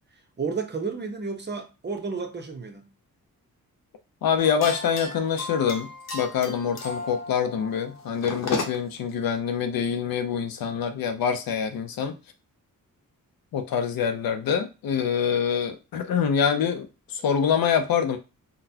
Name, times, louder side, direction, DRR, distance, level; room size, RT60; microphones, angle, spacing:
voice 1, 0.4-2.9, right 4 dB, 30° right, 0.8 m, -32 dB
voice 2, 4.2-12.2 13.5-18.2, left 7 dB, 80° left, 0.6 m, -25 dB
sound 1, 4.4-9.0, left 3 dB, 50° left, 0.9 m, -35 dB
3.9 x 2.2 x 2.8 m
cardioid pair, 75°, 35 cm